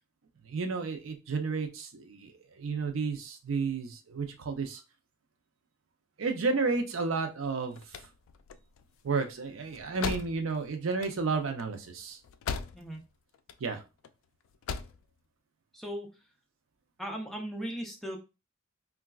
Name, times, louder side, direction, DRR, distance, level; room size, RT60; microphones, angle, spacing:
voice 1, 0.5-4.8 6.2-7.8 9.0-12.2 13.6-13.8, right 4 dB, 80° right, 5 dB, 0.5 m, -32 dB
sound 1, 7.5-13.1 13.3-14.1 14.5-15.0, left 6 dB, 75° left, 0.3 m, -39 dB
voice 2, 15.7-16.1 17.0-18.2, equal, ahead, 1 dB, 0.5 m, -37 dB
3.8 x 2.3 x 2.3 m, 0.28 s
head